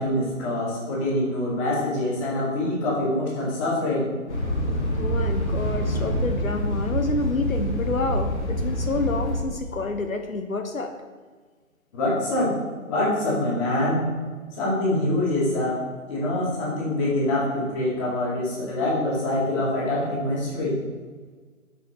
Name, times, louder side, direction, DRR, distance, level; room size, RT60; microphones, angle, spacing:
voice 1, 0.0-4.1 11.9-12.5 12.9-14.1 14.5-15.8 16.1-20.8, left 1 dB, 25° left, -5 dB, 2.1 m, -25 dB
sound 1, 4.3-9.4, equal, 55° left, 1.8 m, -26 dB
voice 2, 4.9-10.9, left 3 dB, 80° left, 7 dB, 0.7 m, -28 dB
6.9 x 4.4 x 4.3 m, 1.5 s
figure-of-eight pair, 135°, 40 cm